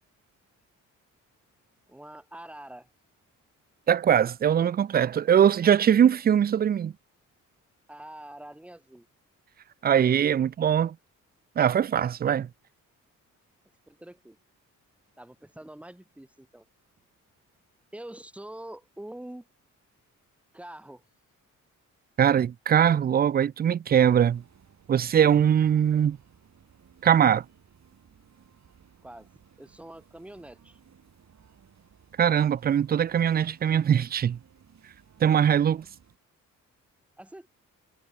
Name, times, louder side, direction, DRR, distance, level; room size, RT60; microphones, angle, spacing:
voice 1, 1.9-2.9 7.9-9.1 13.9-14.4 15.2-16.6 17.9-19.5 20.5-21.0 29.0-29.3 29.6-30.8 37.2-37.5, right 1 dB, 5° right, 1.2 m, -45 dB
voice 2, 3.9-6.9 9.8-10.9 11.6-12.5 22.2-24.4 24.9-26.2 27.0-27.4 32.2-34.4 35.2-35.8, right 9 dB, 30° right, 0.4 m, -21 dB
sound 1, 23.9-36.2, right 7 dB, 55° right, 5.8 m, -58 dB
cardioid pair, 75°, 33 cm